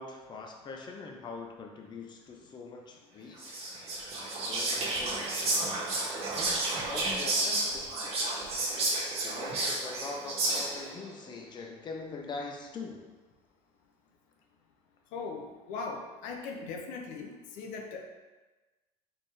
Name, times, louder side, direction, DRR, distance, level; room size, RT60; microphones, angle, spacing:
voice 1, 0.0-3.7 4.5-5.9 6.9-8.4 9.2-13.1, left 3 dB, 30° left, 2 dB, 0.6 m, -43 dB
Whispering, 3.4-10.9, right 2 dB, 45° right, 1.3 m, -31 dB
voice 2, 15.1-18.1, left 4 dB, 75° left, 2 dB, 0.6 m, -39 dB
4.3 x 3.6 x 3.3 m, 1.2 s
cardioid pair, 115°, 14 cm